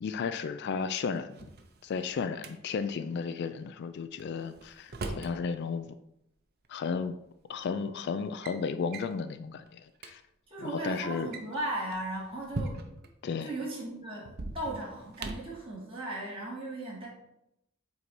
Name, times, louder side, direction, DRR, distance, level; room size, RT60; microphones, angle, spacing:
voice 1, 0.0-1.4 1.8-5.9 6.7-7.2 7.5-10.2 10.6-11.3 13.2-13.5, left 5 dB, 55° left, 11 dB, 0.3 m, -34 dB
Drawer open or close, 1.2-2.5 4.2-5.4 6.7-6.8 7.6-7.8 8.1-8.6 8.9-9.2 9.7-9.8 10.0-10.1 11.1-13.1 14.3-15.6, right 2 dB, 50° right, 0.6 m, -40 dB
voice 2, 10.5-12.8 13.4-17.1, right 1 dB, 25° right, -5 dB, 2.1 m, -37 dB
7.9 x 2.7 x 4.6 m, 0.82 s
head